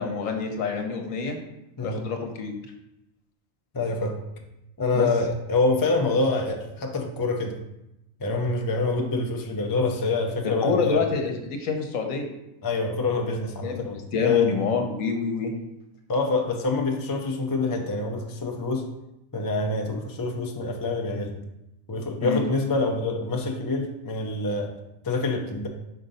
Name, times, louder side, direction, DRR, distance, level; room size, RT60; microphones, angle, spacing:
voice 1, 0.0-1.4 1.8-2.5 4.9-5.1 10.4-12.3 13.6-15.5 22.2-22.4, left 4 dB, 75° left, 4 dB, 1.2 m, -27 dB
voice 2, 3.7-4.2 4.8-7.6 8.2-11.0 12.6-14.8 16.1-18.8 19.3-21.3 21.9-24.7 25.0-25.7, left 3 dB, 30° left, 2 dB, 0.4 m, -26 dB
5.2 x 3.9 x 5.4 m, 0.89 s
omnidirectional pair, 1.4 m